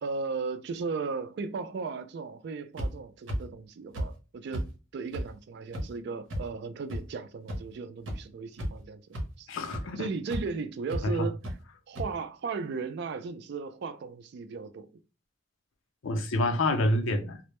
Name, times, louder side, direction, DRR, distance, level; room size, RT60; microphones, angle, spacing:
voice 1, 0.0-9.0 9.4-9.5 10.0-11.4 11.9-14.9, right 4 dB, 55° right, 0.3 m, -36 dB
sound 1, 2.8-2.9 3.3-3.4 3.9-4.1 4.5-4.6 5.1-5.2 5.7-5.8 6.3-6.4 6.9-7.0 7.5-7.6 8.1-8.2 8.6-8.8 9.1-9.2 9.7-9.8 10.3-10.4 10.9-11.0 11.4-11.5 12.0-12.1, equal, 85° right, 0.8 m, -32 dB
voice 2, 9.5-10.1 11.0-11.3 16.0-17.4, left 1 dB, 85° left, 0.5 m, -27 dB
2.1 x 2.0 x 2.9 m
head